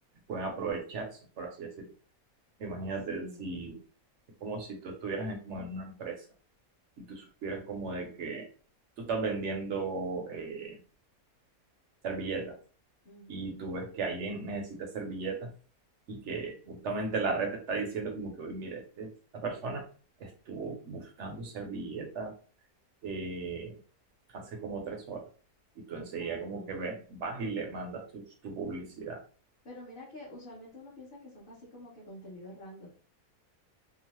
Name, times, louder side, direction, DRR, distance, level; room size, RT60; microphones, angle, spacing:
voice 1, 0.3-1.9 2.6-3.8 4.4-6.2 7.0-8.5 9.0-10.8 12.0-12.6 13.3-15.5 16.1-19.9 20.2-22.3 23.0-23.8 24.3-25.3 25.8-29.2, right 4 dB, 60° right, 2 dB, 0.9 m, -36 dB
voice 2, 3.2-3.5 13.0-13.5 25.9-26.8 29.6-32.9, left 1 dB, 40° left, -7 dB, 1.1 m, -48 dB
2.9 x 2.0 x 2.9 m, 0.40 s
omnidirectional pair, 1.5 m